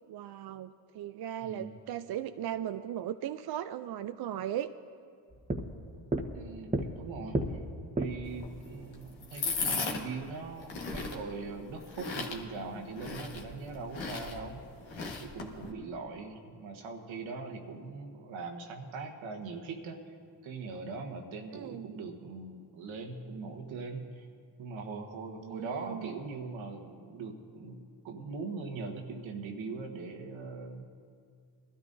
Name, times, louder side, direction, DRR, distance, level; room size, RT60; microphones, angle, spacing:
voice 1, 0.1-4.7 21.5-21.9 25.4-26.1, right 11 dB, 55° right, 10 dB, 0.5 m, -37 dB
voice 2, 1.4-1.7 6.3-7.6 8.0-14.6 15.2-20.2 20.4-24.3 24.6-30.8, right 4 dB, 85° right, 2 dB, 1.4 m, -41 dB
sound 1, 5.3-8.4, right 1 dB, 15° right, 1.1 m, -34 dB
sound 2, 8.2-15.7, left 4 dB, 75° left, 1.6 m, -38 dB
21.0 x 13.0 x 2.7 m, 2.3 s
supercardioid pair, 60°, 45 cm